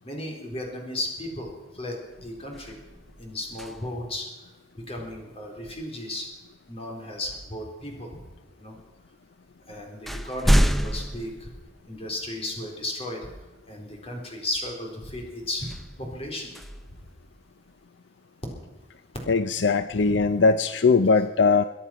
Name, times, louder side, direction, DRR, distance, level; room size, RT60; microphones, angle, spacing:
voice 1, 0.0-2.8 3.2-4.2 4.7-6.3 6.7-8.2 8.6-8.7 9.7-11.5 11.9-13.3 13.7-15.7 16.0-16.5 20.0-20.2, left 1 dB, 35° left, 1 dB, 4.1 m, -35 dB
sound 1, 1.5-1.7 2.1-4.2 6.3-6.5 7.3-8.1 9.0-9.1 9.5-12.3 12.8-12.9 15.5-17.7, equal, ahead, 0.6 m, -29 dB
voice 2, 19.3-21.6, left 4 dB, 70° left, 11 dB, 0.6 m, -20 dB
23.5 x 10.0 x 5.9 m, 1.2 s
head